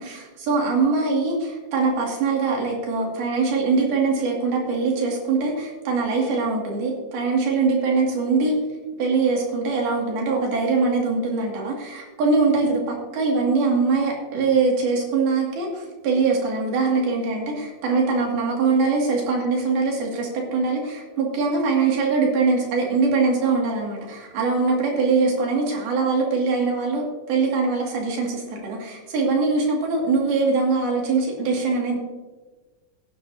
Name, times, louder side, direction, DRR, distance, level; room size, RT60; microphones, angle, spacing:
voice 1, 0.0-8.6 9.0-32.0, right 4 dB, 85° right, -1 dB, 4.2 m, -22 dB
16.5 x 9.9 x 2.7 m, 1.3 s
omnidirectional pair, 4.2 m